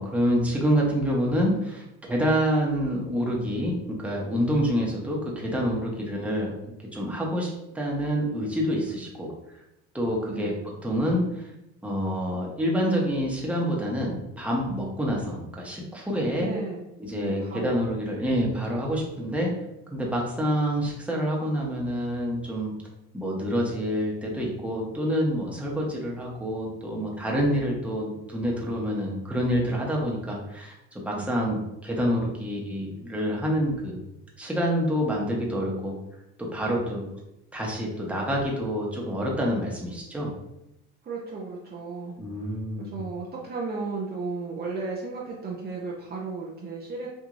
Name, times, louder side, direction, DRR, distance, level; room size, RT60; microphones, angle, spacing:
voice 1, 0.0-6.5 6.8-9.3 9.9-10.5 10.8-11.5 11.8-16.5 17.0-19.5 19.9-22.7 23.1-34.0 34.4-35.9 36.4-37.0 37.5-40.3 42.2-42.9, equal, 5° right, -3 dB, 1.0 m, -27 dB
voice 2, 10.3-10.6 16.4-16.8 17.2-17.7 31.2-31.3 41.0-42.2 42.4-42.5 42.8-47.1, right 4 dB, 30° right, -3 dB, 0.7 m, -34 dB
4.7 x 2.6 x 2.6 m, 0.87 s
supercardioid pair, 95°, 30 cm